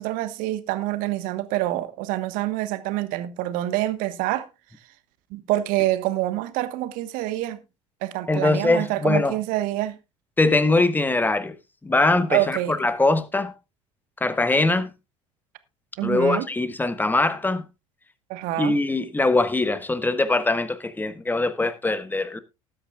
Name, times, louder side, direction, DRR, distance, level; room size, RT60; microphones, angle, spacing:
voice 1, 0.0-4.5 5.3-7.6 8.0-10.0 12.3-12.8 16.0-16.5 18.3-18.8, right 15 dB, 55° right, 1.3 m, -26 dB
voice 2, 8.3-9.4 10.4-11.5 11.8-13.5 14.2-14.9 16.0-17.7 18.6-22.4, left 2 dB, 10° left, 1.3 m, -22 dB
19.5 x 8.5 x 2.4 m
figure-of-eight pair, 65°, 17 cm